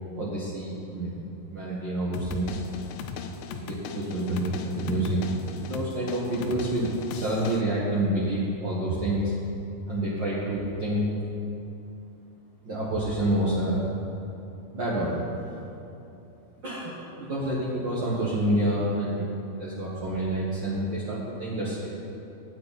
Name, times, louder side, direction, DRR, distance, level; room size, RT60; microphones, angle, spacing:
voice 1, 0.1-1.2 1.5-2.6 3.5-5.2 5.6-9.3 9.9-11.1 12.6-13.9 14.7-15.2 16.6-19.3 19.5-21.9, right 1 dB, 60° right, -7 dB, 1.1 m, -28 dB
sound 1, 2.1-7.6, left 7 dB, 85° left, 1.9 m, -39 dB
16.0 x 8.9 x 4.1 m, 2.8 s
omnidirectional pair, 4.4 m